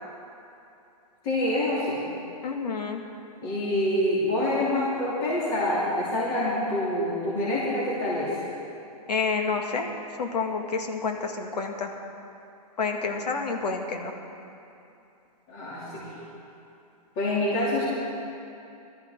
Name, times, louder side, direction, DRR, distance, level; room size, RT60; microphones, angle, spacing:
voice 1, 1.2-2.0 3.4-8.3 15.5-16.1 17.2-17.8, left 1 dB, 30° left, -8 dB, 2.7 m, -26 dB
voice 2, 2.4-3.0 9.1-9.9 10.2-11.9 12.8-14.1, left 4 dB, 85° left, 3 dB, 1.8 m, -29 dB
18.5 x 13.0 x 3.7 m, 2.8 s
hypercardioid pair, 165°, 20 cm